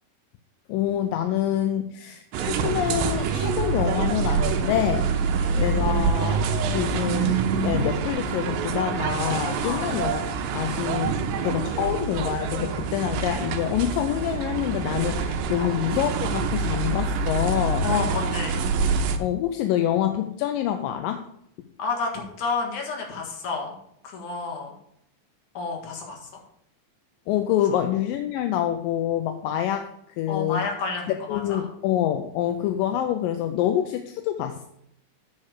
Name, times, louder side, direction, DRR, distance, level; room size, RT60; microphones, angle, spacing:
voice 1, 0.7-5.1 5.6-6.4 6.7-10.2 10.5-17.9 19.2-21.3 27.3-30.6 31.3-34.6, left 11 dB, 80° left, 6 dB, 2.1 m, -26 dB
sound 1, 2.3-19.2, right 5 dB, 80° right, 2.4 m, -26 dB
voice 2, 5.2-5.6 9.6-9.9 15.6-15.8 17.8-18.6 21.8-23.8 24.0-24.7 25.5-26.3 27.7-27.8 30.3-31.7, left 4 dB, 60° left, 1 dB, 2.9 m, -30 dB
8.6 x 4.9 x 6.6 m, 0.72 s
omnidirectional pair, 4.2 m